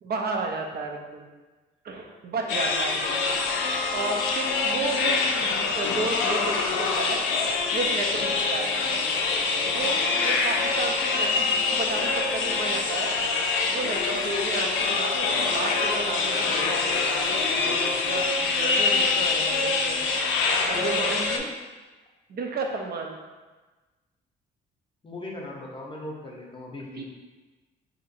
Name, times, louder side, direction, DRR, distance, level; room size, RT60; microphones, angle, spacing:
voice 1, 0.0-1.3 1.8-3.1 3.9-7.2 7.7-8.7 9.7-13.1 13.7-20.0 20.6-21.0 22.3-23.2 26.9-27.1, right 3 dB, 50° right, 2 dB, 0.5 m, -33 dB
sound 1, 2.5-21.4, left 4 dB, 90° left, 0.4 m, -25 dB
voice 2, 20.7-21.5 25.0-27.1, left 1 dB, 25° left, -1 dB, 0.7 m, -36 dB
2.8 x 2.4 x 4.0 m, 1.2 s
cardioid pair, 90°, 20 cm